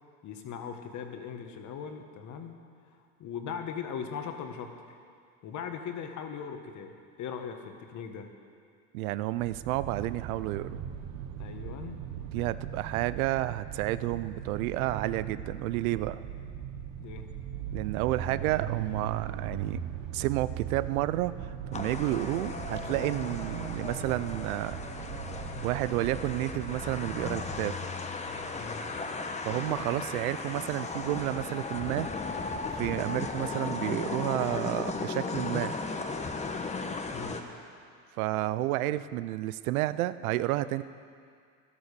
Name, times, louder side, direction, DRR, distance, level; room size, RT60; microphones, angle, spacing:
voice 1, 0.2-2.5 3.2-5.0 5.4-8.3 11.4-12.0 17.0-17.3 28.6-28.8 37.1-37.4, left 7 dB, 45° left, 5 dB, 1.6 m, -39 dB
voice 2, 8.9-10.8 12.3-16.2 17.7-19.8 20.1-24.8 25.6-27.7 29.4-32.1 32.7-35.7 38.2-40.8, right 16 dB, 80° right, 15 dB, 0.6 m, -31 dB
sound 1, 9.4-27.7, right 8 dB, 50° right, 1.2 m, -39 dB
sound 2, 21.7-37.4, left 4 dB, 15° left, 1.0 m, -36 dB
12.5 x 12.0 x 6.8 m, 2.2 s
supercardioid pair, 115°, 42 cm